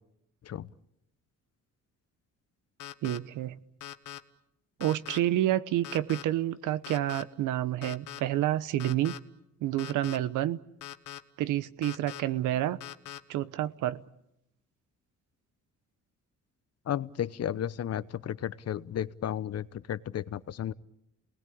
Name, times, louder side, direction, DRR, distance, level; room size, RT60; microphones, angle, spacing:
sound 1, 2.8-3.2 3.8-4.2 4.8-5.2 5.8-6.2 6.8-7.2 7.8-8.2 8.8-9.2 9.8-10.2 10.8-11.2 11.8-12.2 12.8-13.2, left 12 dB, 85° left, 1.3 m, -41 dB
voice 1, 3.0-3.6 4.8-9.2 9.6-10.6 11.4-12.8 13.3-14.0, right 13 dB, 90° right, 16 dB, 1.0 m, -29 dB
voice 2, 16.9-20.7, left 10 dB, 55° left, 16 dB, 0.9 m, -33 dB
28.0 x 19.5 x 8.6 m, 0.83 s
cardioid pair, 90°, 30 cm